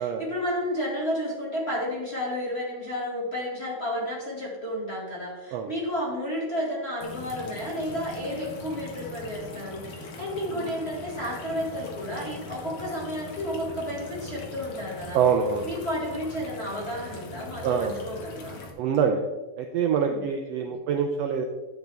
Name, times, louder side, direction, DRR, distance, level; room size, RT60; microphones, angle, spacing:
voice 1, 0.0-15.2 15.6-18.6 20.0-20.2 20.6-20.8, equal, 25° left, -4 dB, 1.7 m, -32 dB
sound 1, 7.0-18.7, left 3 dB, 55° left, 1.7 m, -41 dB
voice 2, 15.1-15.7 17.6-18.0 18.8-19.2 19.6-21.4, right 7 dB, 85° right, 4 dB, 1.4 m, -25 dB
11.0 x 7.9 x 3.5 m, 1.2 s
omnidirectional pair, 3.7 m